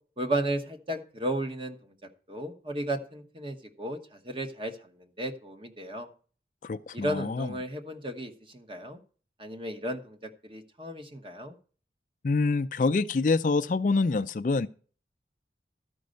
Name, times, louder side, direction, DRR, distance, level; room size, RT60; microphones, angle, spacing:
voice 1, 0.2-1.8 2.3-6.1 6.9-9.0 9.4-11.5, right 1 dB, 30° right, 1.1 m, -34 dB
voice 2, 6.6-7.5 12.2-14.7, left 3 dB, 45° left, 0.4 m, -26 dB
13.0 x 5.2 x 6.5 m
head